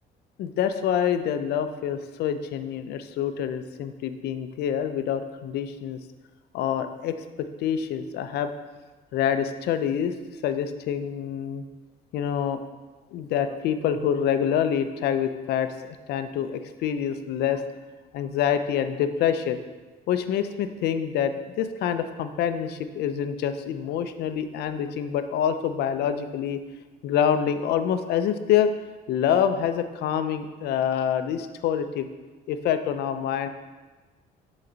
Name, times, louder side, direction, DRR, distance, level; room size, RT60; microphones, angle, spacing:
voice 1, 0.4-6.0 6.5-8.5 9.1-10.1 10.4-11.6 12.1-12.6 13.1-15.7 16.1-17.6 18.1-19.6 20.1-26.6 27.0-28.7 29.1-32.1 32.5-33.5, left 9 dB, 75° left, 9 dB, 0.6 m, -26 dB
10.0 x 4.0 x 3.9 m, 1.3 s
cardioid pair, 110°, 17 cm